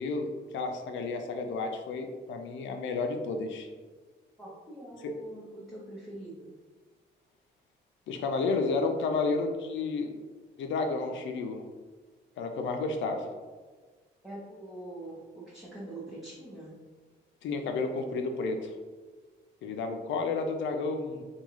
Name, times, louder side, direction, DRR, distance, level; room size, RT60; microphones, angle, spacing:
voice 1, 0.0-3.7 5.0-5.1 8.1-10.1 10.6-11.6 12.4-13.3 17.4-18.7 19.6-21.2, left 3 dB, 70° left, 5 dB, 0.5 m, -31 dB
voice 2, 4.4-6.5 9.1-9.2 14.2-16.7, right 1 dB, ahead, -7 dB, 0.7 m, -44 dB
3.6 x 2.3 x 3.0 m, 1.4 s
cardioid pair, 90°, 20 cm